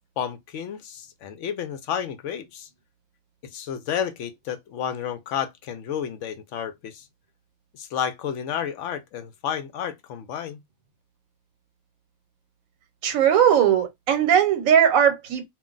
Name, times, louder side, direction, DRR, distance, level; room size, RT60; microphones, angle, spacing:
voice 1, 0.2-2.7 3.4-7.1 7.7-10.6, left 8 dB, 70° left, 0.8 m, -31 dB
voice 2, 13.0-15.5, right 9 dB, 75° right, 1.1 m, -19 dB
2.5 x 2.1 x 3.7 m
omnidirectional pair, 1.5 m